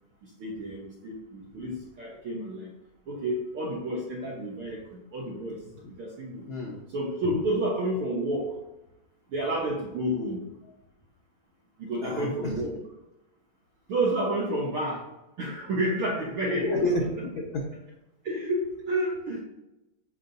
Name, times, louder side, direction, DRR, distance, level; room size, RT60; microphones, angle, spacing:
voice 1, 0.4-2.7 3.1-5.6 6.0-6.4 6.9-8.6 9.3-10.4 11.8-12.8 13.9-15.0 15.4-16.9 18.2-19.4, right 1 dB, 60° right, -4 dB, 1.5 m, -30 dB
voice 2, 6.5-6.8 12.0-12.6 16.6-17.6, left 1 dB, 70° left, -2 dB, 1.2 m, -29 dB
14.5 x 5.2 x 2.7 m, 0.95 s
omnidirectional pair, 4.0 m